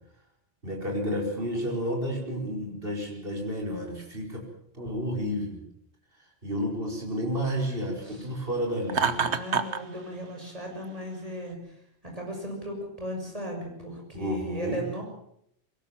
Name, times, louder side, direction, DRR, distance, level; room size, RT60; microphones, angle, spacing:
voice 1, 0.6-4.4 4.7-5.6 6.4-9.2 14.1-14.8, equal, 55° right, 1 dB, 5.0 m, -31 dB
Laughter, 8.9-9.8, right 6 dB, 75° right, 1.5 m, -26 dB
voice 2, 9.2-11.6 12.0-15.0, equal, 30° right, 1 dB, 6.5 m, -36 dB
21.5 x 18.5 x 7.3 m, 0.70 s
omnidirectional pair, 1.2 m